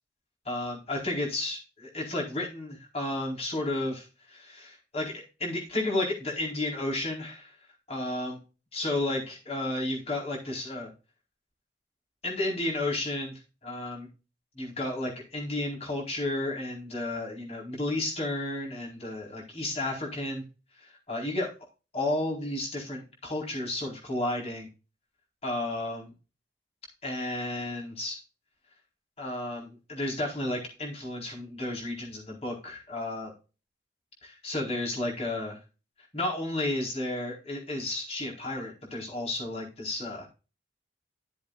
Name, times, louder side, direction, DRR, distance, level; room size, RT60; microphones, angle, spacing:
voice 1, 0.4-7.5 7.9-8.4 8.7-10.9 12.2-14.1 14.6-20.4 20.8-21.5 21.9-24.7 25.4-26.1 27.0-28.2 29.2-33.3 34.2-35.6 36.1-40.3, left 1 dB, 35° left, -2 dB, 4.5 m, -32 dB
14.0 x 7.7 x 2.5 m, 0.31 s
head